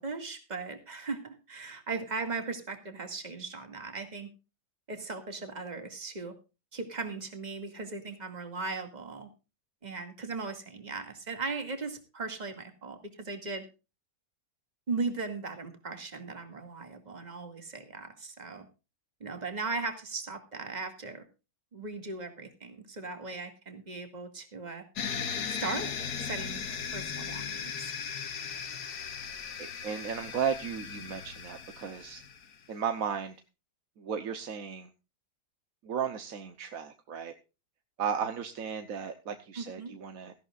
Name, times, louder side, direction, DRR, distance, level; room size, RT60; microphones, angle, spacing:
voice 1, 0.0-4.3 4.9-6.3 6.7-9.3 9.8-13.7 14.9-18.7 19.2-21.2 21.7-24.8 25.5-25.9 26.2-26.6 26.9-27.9 39.6-39.9, right 4 dB, 25° right, 5 dB, 2.3 m, -38 dB
sound 1, 25.0-32.5, left 7 dB, 65° left, 1.7 m, -37 dB
voice 2, 29.6-32.2 32.7-33.4 34.0-34.9 35.8-37.3 38.0-40.3, right 7 dB, 55° right, 7 dB, 1.3 m, -35 dB
17.5 x 14.0 x 2.5 m, 0.30 s
omnidirectional pair, 1.8 m